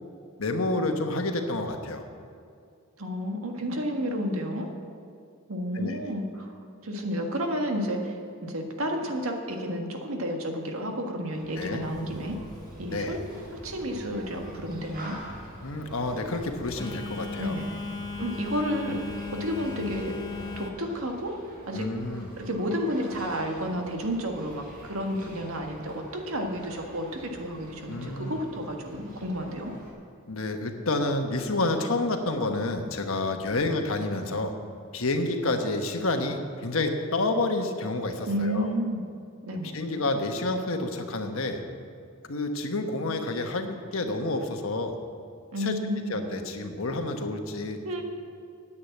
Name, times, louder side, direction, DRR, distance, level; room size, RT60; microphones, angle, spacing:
voice 1, 0.4-2.0 5.7-6.0 11.6-11.8 12.9-13.2 15.6-17.5 21.7-22.3 27.9-28.4 30.3-34.5 34.9-38.7 39.7-41.6 42.3-45.0 45.6-45.8 46.1-47.8, left 2 dB, 75° left, 5 dB, 1.2 m, -29 dB
voice 2, 3.0-4.7 5.5-12.4 12.8-13.2 13.5-15.2 17.4-17.7 18.2-20.1 20.6-21.3 21.7-21.9 22.4-29.7 38.3-39.0 39.4-39.7 43.1-43.2 45.5-46.2 47.8-48.0, equal, 85° right, 3 dB, 1.7 m, -31 dB
Human group actions, 11.3-29.9, right 1 dB, 45° right, 3.8 m, -48 dB
Telephone, 11.8-20.7, left 3 dB, 20° left, 0.8 m, -39 dB
9.9 x 8.7 x 8.4 m, 2.4 s
head